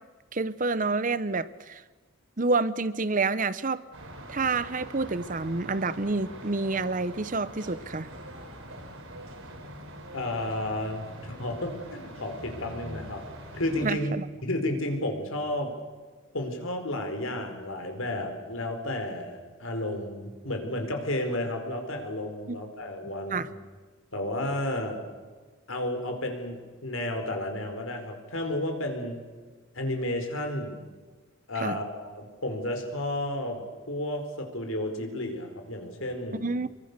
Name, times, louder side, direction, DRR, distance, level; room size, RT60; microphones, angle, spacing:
voice 1, 0.3-1.8 2.4-3.8 4.3-8.1 13.8-14.2 22.5-22.6 23.3-23.5 31.6-31.8 36.4-36.7, right 3 dB, 40° right, 16 dB, 0.8 m, -28 dB
sound 1, 3.9-13.9, right 1 dB, 75° right, 5.5 m, -44 dB
voice 2, 10.1-13.3 13.5-14.1 14.4-15.7 16.3-23.5 24.1-25.0 25.7-29.2 29.7-30.8 31.5-36.5, left 1 dB, 75° left, 5 dB, 4.5 m, -32 dB
26.5 x 23.5 x 6.8 m, 1.4 s
head